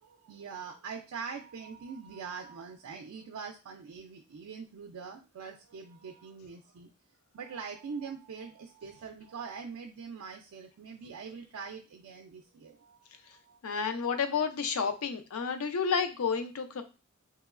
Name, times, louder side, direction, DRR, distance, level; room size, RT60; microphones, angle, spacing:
voice 1, 0.0-6.9 7.3-13.0 13.3-13.6 15.5-15.6, right 5 dB, 80° right, 2 dB, 0.4 m, -43 dB
voice 2, 13.6-16.8, left 6 dB, 75° left, 7 dB, 0.5 m, -30 dB
3.0 x 2.9 x 2.4 m, 0.31 s
head